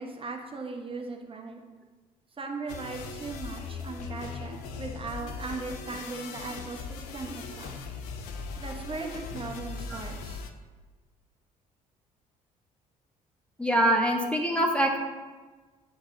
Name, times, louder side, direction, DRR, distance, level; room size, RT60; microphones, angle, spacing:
voice 1, 0.0-1.6 2.4-7.8 8.6-10.4, right 3 dB, 30° right, 2 dB, 0.9 m, -38 dB
sound 1, 2.7-10.5, left 4 dB, 75° left, 0.5 m, -39 dB
voice 2, 13.6-15.0, right 1 dB, 5° left, 1 dB, 0.8 m, -24 dB
9.6 x 3.9 x 2.7 m, 1.3 s
figure-of-eight pair, 50°, 19 cm